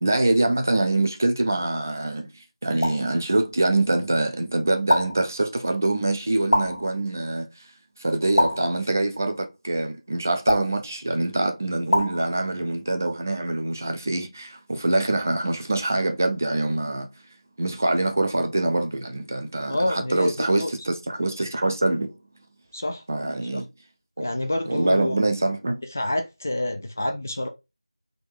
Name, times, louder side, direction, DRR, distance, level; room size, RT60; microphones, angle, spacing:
voice 1, 0.0-2.3 2.6-7.5 8.0-17.1 17.6-22.2 23.1-23.7 24.2-24.3 24.7-25.8, right 2 dB, 30° right, 0.5 m, -24 dB
sound 1, 2.8-3.1 4.9-5.3 6.5-6.9 8.4-8.8 10.5-10.9 11.9-12.2, left 1 dB, 85° left, 1.1 m, -23 dB
voice 2, 19.7-20.7 22.7-23.0 23.5-23.6 24.2-25.2 25.9-27.5, left 1 dB, 25° left, 0.3 m, -27 dB
3.8 x 2.5 x 3.5 m
figure-of-eight pair, 175°, 3 cm